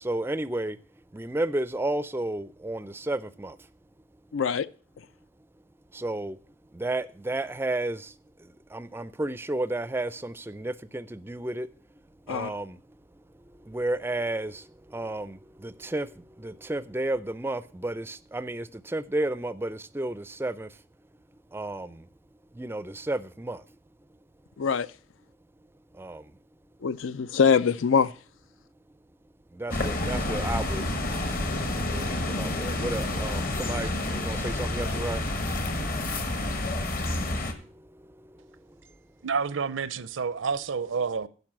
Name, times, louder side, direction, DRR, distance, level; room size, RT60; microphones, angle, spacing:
voice 1, 0.0-0.8 1.1-3.6 5.9-6.4 6.7-8.1 8.7-11.7 12.3-12.8 13.7-14.6 14.9-16.1 16.4-20.7 21.5-22.0 22.6-23.6 26.0-26.2 29.6-30.9 31.9-35.2, right 1 dB, 10° right, 0.4 m, -32 dB
voice 2, 4.3-4.7 12.3-12.5 24.6-24.9 26.8-28.1, left 6 dB, 75° left, 0.5 m, -23 dB
sound 1, 29.7-37.5, left 1 dB, 45° left, 1.2 m, -29 dB
voice 3, 39.2-41.3, right 5 dB, 80° right, 0.6 m, -29 dB
10.5 x 5.3 x 7.4 m
head